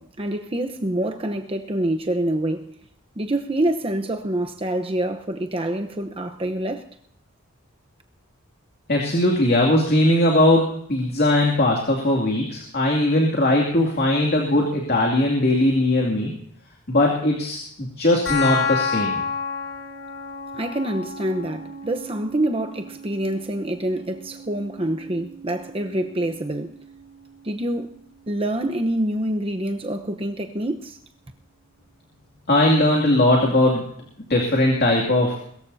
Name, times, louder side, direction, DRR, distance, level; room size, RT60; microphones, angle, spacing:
voice 1, 0.0-2.8 3.2-6.8 20.5-26.7 27.4-27.9 28.3-31.0, right 1 dB, 25° right, 0.9 m, -26 dB
voice 2, 8.9-16.3 16.9-19.1 32.5-33.8 34.3-35.4, left 1 dB, 45° left, 2.6 m, -19 dB
sound 1, 18.3-29.2, left 5 dB, 60° left, 5.2 m, -32 dB
22.5 x 14.5 x 2.8 m
head